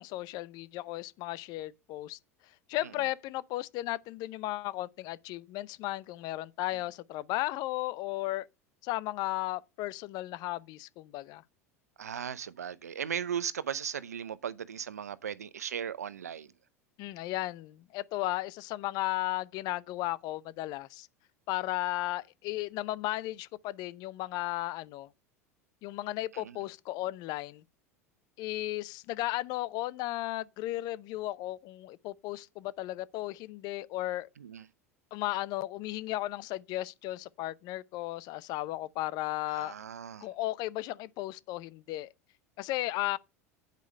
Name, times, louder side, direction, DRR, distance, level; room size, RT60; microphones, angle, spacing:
voice 1, 0.0-2.2 2.7-8.5 8.8-11.4 17.0-21.1 21.5-25.1 25.8-27.6 28.4-34.3 35.1-39.8 40.2-42.1 42.6-43.2, left 17 dB, 55° left, 0.7 m, -35 dB
voice 2, 12.0-16.5 26.3-26.6 34.4-34.6 39.5-40.3, right 8 dB, 85° right, 0.6 m, -37 dB
9.2 x 5.1 x 6.4 m
hypercardioid pair, 85°, 8 cm